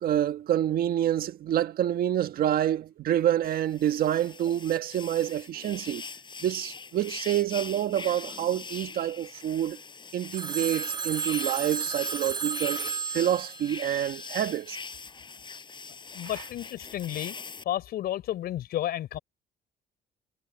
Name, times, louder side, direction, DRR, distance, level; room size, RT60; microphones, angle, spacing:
voice 1, 0.0-6.0 6.4-9.8 10.1-14.8, right 11 dB, 60° right, 1.5 m, -27 dB
sound 1, 3.4-17.6, left 5 dB, 25° left, 6.5 m, -42 dB
Telephone, 10.3-14.6, right 6 dB, 25° right, 1.1 m, -33 dB
voice 2, 16.1-17.4 17.7-19.2, left 12 dB, 70° left, 5.2 m, -32 dB
cardioid pair, 110°, 17 cm